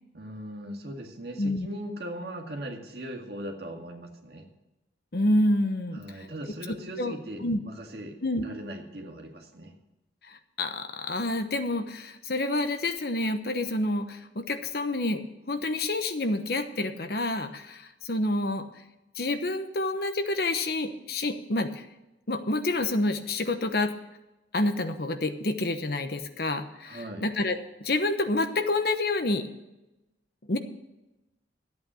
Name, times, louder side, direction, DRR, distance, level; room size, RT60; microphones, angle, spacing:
voice 1, 0.1-4.5 5.9-8.1 8.4-9.7 26.9-27.2, right 1 dB, 60° right, 1 dB, 2.1 m, -39 dB
voice 2, 5.1-6.3 7.0-7.1 7.4-7.6 8.2-8.4 10.3-15.2 15.5-18.6 19.2-21.8 22.3-23.9 24.5-29.5 30.5-30.6, left 2 dB, 60° left, 8 dB, 1.0 m, -28 dB
13.0 x 8.6 x 6.3 m, 0.98 s
head